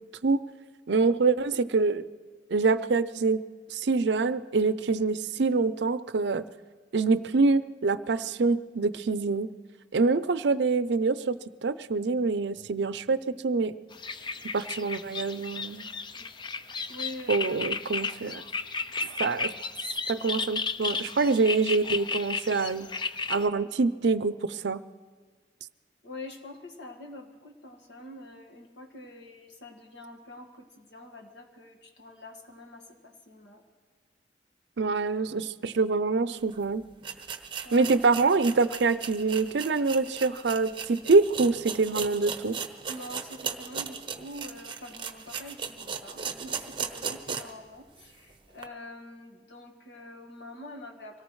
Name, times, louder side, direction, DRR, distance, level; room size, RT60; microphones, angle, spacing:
voice 1, 0.9-2.0 2.5-3.4 3.7-6.4 6.9-9.5 9.9-13.8 14.5-15.9 17.3-18.4 19.2-19.5 20.1-22.9 23.3-24.8 34.8-36.8 37.7-42.6, right 4 dB, 70° right, 14 dB, 0.5 m, -25 dB
sound 1, 13.9-23.5, left 4 dB, 25° left, 0.5 m, -34 dB
voice 2, 16.9-18.0 26.0-33.6 37.6-37.9 42.9-51.2, left 1 dB, 70° left, 2 dB, 1.8 m, -45 dB
sound 2, 36.5-36.6 37.0-47.6 48.0-48.1 48.6-48.7, right 6 dB, 30° right, 0.9 m, -37 dB
25.0 x 18.0 x 3.2 m, 1.5 s
head